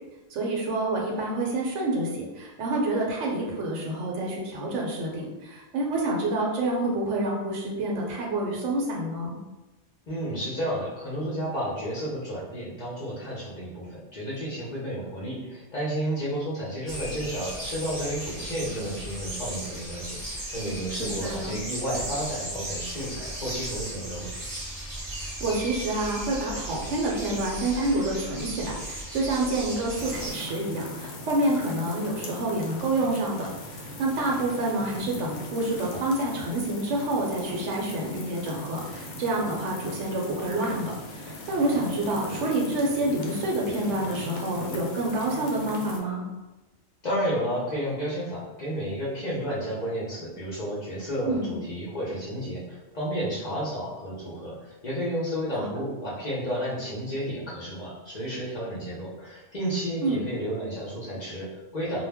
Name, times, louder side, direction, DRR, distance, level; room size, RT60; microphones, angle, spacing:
voice 1, 0.3-9.4 21.0-21.6 25.2-33.5 33.7-46.2 51.2-51.5 55.6-55.7 60.0-60.2, right 2 dB, 80° right, -2 dB, 0.9 m, -28 dB
voice 2, 10.1-24.3 47.0-62.0, equal, 45° left, -7 dB, 0.7 m, -32 dB
sound 1, 16.9-30.3, right 1 dB, 20° right, 0.7 m, -36 dB
sound 2, 30.0-46.0, left 1 dB, 85° left, 0.9 m, -39 dB
2.2 x 2.0 x 3.4 m, 1.1 s
omnidirectional pair, 1.2 m